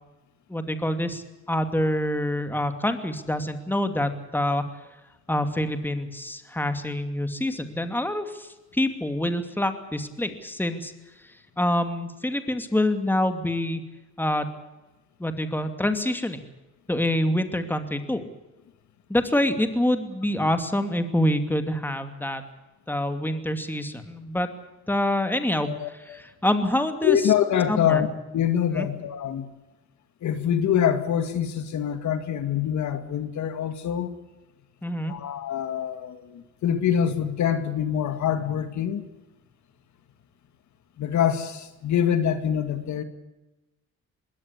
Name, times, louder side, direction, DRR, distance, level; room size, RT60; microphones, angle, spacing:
voice 1, 0.5-4.6 5.3-10.9 11.6-13.8 14.2-14.5 15.2-16.5 16.9-18.2 19.1-22.4 22.9-24.5 24.9-27.2 27.7-28.1 28.7-28.9 34.8-35.1, left 1 dB, 5° left, 8 dB, 2.6 m, -26 dB
voice 2, 25.7-26.2 27.0-28.1 28.3-29.5 30.2-34.1 35.0-39.0 41.0-43.0, left 9 dB, 70° left, 10 dB, 2.1 m, -25 dB
21.5 x 17.5 x 8.2 m, 1.0 s
cardioid pair, 90°, 30 cm